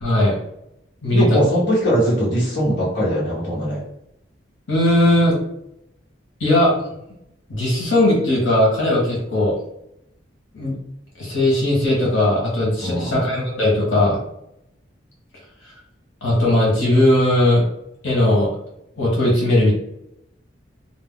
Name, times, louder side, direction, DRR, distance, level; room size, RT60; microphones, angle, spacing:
voice 1, 0.0-0.3 1.0-1.4 4.7-5.4 6.4-6.7 7.5-9.5 10.5-10.7 11.2-14.2 16.2-17.6 18.0-18.5 19.0-19.7, left 1 dB, 90° left, -5 dB, 1.1 m, -18 dB
voice 2, 1.1-3.8 12.8-13.3, equal, 60° left, -7 dB, 1.1 m, -21 dB
2.6 x 2.0 x 3.5 m, 0.80 s
head